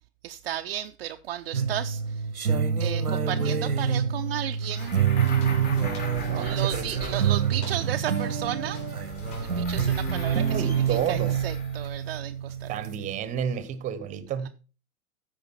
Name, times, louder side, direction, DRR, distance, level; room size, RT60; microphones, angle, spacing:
voice 1, 0.2-2.3 2.8-5.0 6.3-8.8 9.4-12.7, right 12 dB, 45° right, 0.5 m, -34 dB
sound 1, 1.5-13.2, right 7 dB, 85° right, 1.0 m, -27 dB
sound 2, 4.6-7.9 8.9-12.1, left 4 dB, 20° left, 1.2 m, -41 dB
Walk footsteps, 4.8-11.5, left 3 dB, 45° left, 4.2 m, -47 dB
voice 2, 6.3-7.2 10.3-11.4 12.7-14.5, right 8 dB, 15° right, 0.8 m, -31 dB
14.5 x 5.0 x 4.4 m
figure-of-eight pair, 105°, 43 cm